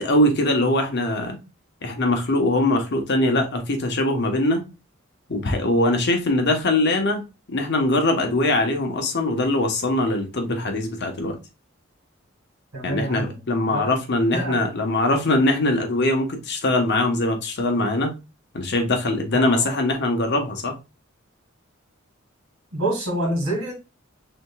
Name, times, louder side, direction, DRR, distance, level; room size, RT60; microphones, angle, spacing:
voice 1, 0.0-1.4 1.8-4.6 5.3-7.2 7.5-11.4 12.8-18.1 18.5-20.8, left 1 dB, 55° left, 1.0 m, -22 dB
voice 2, 12.7-13.9 14.3-14.6 19.3-19.7 22.7-23.7, right 1 dB, 75° right, 2.3 m, -27 dB
5.0 x 3.6 x 2.3 m
head